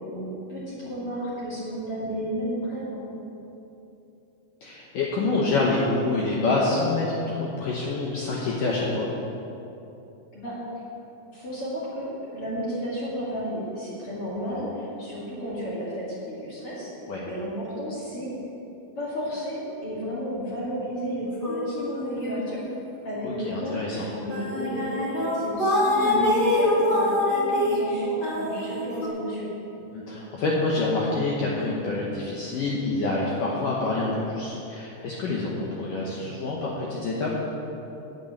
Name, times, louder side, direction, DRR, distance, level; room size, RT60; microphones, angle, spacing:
voice 1, 0.0-3.0 10.3-10.8 11.3-16.9 17.2-18.3 19.0-22.6 23.0-23.8 24.2-29.5, equal, 40° left, -7 dB, 2.3 m, -32 dB
voice 2, 4.6-9.1 14.5-14.6 17.1-17.2 23.2-24.0 29.9-37.3, left 3 dB, 75° left, -4 dB, 2.0 m, -27 dB
sound 1, 21.4-22.8 23.1-23.4 24.0-24.1 24.3-29.1, left 1 dB, 20° left, 1.5 m, -25 dB
8.6 x 8.2 x 9.1 m, 3.0 s
omnidirectional pair, 5.3 m